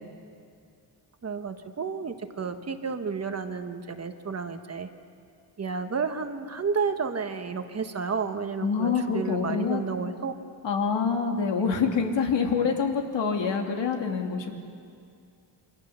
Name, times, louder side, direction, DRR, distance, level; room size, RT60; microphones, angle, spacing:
voice 1, 1.2-4.9 5.6-10.3 11.6-11.7, right 5 dB, 35° right, 7 dB, 1.3 m, -31 dB
voice 2, 8.6-9.8 10.6-14.5, left 5 dB, 70° left, 2 dB, 2.9 m, -26 dB
28.0 x 24.5 x 6.9 m, 2.3 s
wide cardioid pair, 150°, 45 cm